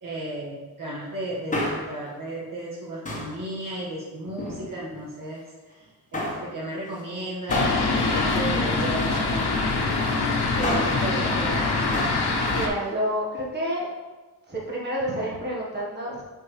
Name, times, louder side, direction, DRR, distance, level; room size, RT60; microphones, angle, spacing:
voice 1, 0.0-9.5 10.6-11.8, right 1 dB, 60° right, -7 dB, 1.9 m, -34 dB
Male speech man speaking, 1.3-2.1 3.0-3.4 4.2-5.0 6.1-6.5 7.5-9.2 10.4-11.1 11.9-12.3 12.5-12.6, left 1 dB, 20° left, 1.3 m, -31 dB
Fixed-wing aircraft airplane, 7.5-12.7, left 3 dB, 90° left, 1.0 m, -24 dB
voice 2, 10.6-10.9 12.4-13.9 14.5-16.2, equal, 25° right, -5 dB, 1.5 m, -29 dB
7.2 x 4.5 x 3.3 m, 1.3 s
wide cardioid pair, 105°, 38 cm